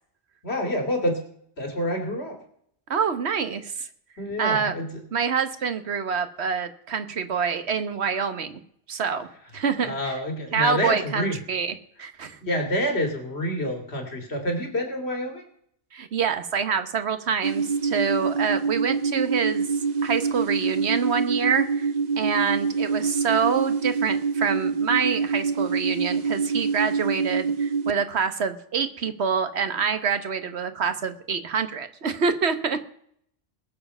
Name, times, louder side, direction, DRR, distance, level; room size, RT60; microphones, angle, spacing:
voice 1, 0.4-1.2 1.6-2.4 4.2-4.9 9.8-11.4 12.4-15.4, equal, 70° left, 3 dB, 3.0 m, -27 dB
voice 2, 2.9-3.9 4.4-4.7 5.1-8.6 8.9-9.3 9.5-10.1 10.5-12.4 15.9-19.7 20.0-21.9 22.2-32.8, right 6 dB, 75° right, 10 dB, 1.4 m, -26 dB
sound 1, 17.4-27.9, right 5 dB, 45° right, 0.7 m, -26 dB
20.5 x 7.2 x 5.5 m, 0.66 s
omnidirectional pair, 1.1 m